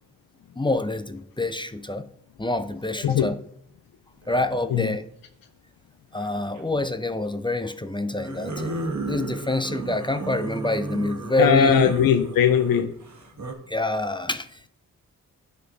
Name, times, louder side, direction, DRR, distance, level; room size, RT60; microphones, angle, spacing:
voice 1, 0.6-2.1 2.4-3.3 4.3-5.0 6.1-11.8 13.7-14.7, left 2 dB, 15° left, 10 dB, 0.6 m, -26 dB
sound 1, 4.2-4.6 6.1-6.7 8.1-13.5, right 2 dB, 55° right, 1.4 m, -34 dB
voice 2, 11.4-12.9, left 8 dB, 90° left, 8 dB, 0.5 m, -19 dB
9.9 x 4.4 x 4.0 m, 0.68 s
cardioid pair, 40°, 34 cm